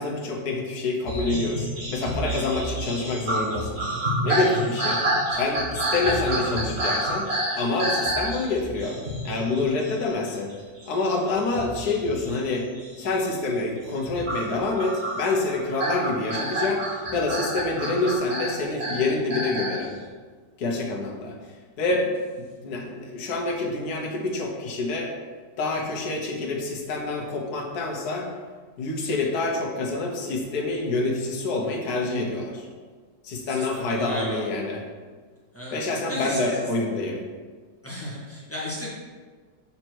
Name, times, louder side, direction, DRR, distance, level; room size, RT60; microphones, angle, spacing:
voice 1, 0.0-3.8 4.2-5.0 5.3-9.0 9.2-10.5 10.9-12.7 13.0-16.9 17.1-19.9 20.6-21.4 21.8-22.1 22.6-25.1 25.6-28.3 28.8-32.7 33.2-34.8 35.7-37.2, left 3 dB, 60° left, -1 dB, 1.5 m, -27 dB
sound 1, 1.1-10.5 10.8-12.5 12.7-13.2 13.8-19.8, right 1 dB, 35° right, 1.7 m, -29 dB
voice 2, 4.4-4.8 33.5-34.6 35.5-35.8 36.1-36.7 37.8-38.9, equal, 10° left, -7 dB, 1.5 m, -34 dB
6.7 x 4.4 x 4.6 m, 1.5 s
omnidirectional pair, 2.0 m